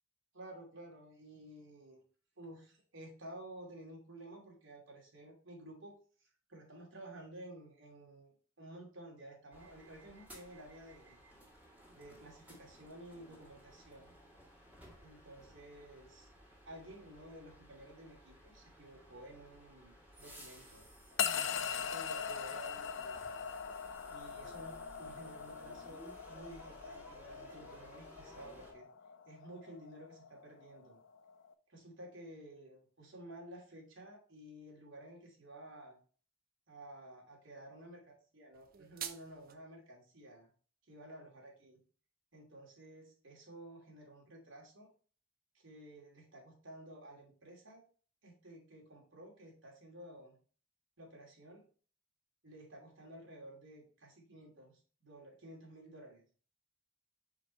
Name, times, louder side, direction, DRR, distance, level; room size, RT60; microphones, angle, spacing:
voice 1, 0.3-2.0 2.4-5.9 6.2-11.2 11.9-14.1 15.0-16.3 16.7-20.9 21.3-23.3 24.1-28.9 29.3-31.0 31.7-36.0 36.7-38.0 38.3-40.5 40.9-41.8 42.3-44.9 45.5-47.8 48.2-50.4 51.0-51.6 52.4-56.2, right 1 dB, 85° right, -1 dB, 2.6 m, -53 dB
sound 1, 9.5-28.7, equal, 10° right, 1.8 m, -58 dB
sound 2, 21.2-31.5, left 7 dB, 75° left, 0.5 m, -41 dB
sound 3, 38.5-39.5, right 9 dB, 50° right, 0.6 m, -46 dB
5.2 x 5.0 x 4.3 m, 0.41 s
head